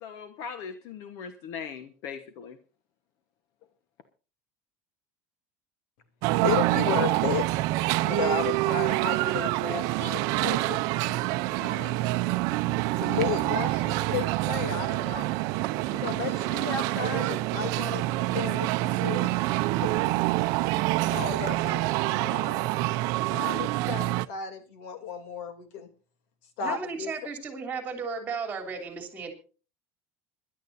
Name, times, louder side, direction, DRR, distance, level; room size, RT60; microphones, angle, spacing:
voice 1, 0.0-2.6, left 6 dB, 50° left, 1.3 m, -39 dB
sound 1, 6.2-24.3, right 18 dB, 55° right, 0.6 m, -26 dB
voice 2, 6.4-7.4 8.0-10.8 11.5-12.1 13.0-15.3 15.9-19.4 19.8-19.9 20.5-20.7 21.1-21.8 22.2-22.7 23.3-25.9 26.6-27.1, left 7 dB, 80° left, 2.9 m, -34 dB
voice 3, 26.6-29.3, right 5 dB, 20° right, 3.3 m, -35 dB
26.5 x 11.5 x 2.7 m
cardioid pair, 165°, 7 cm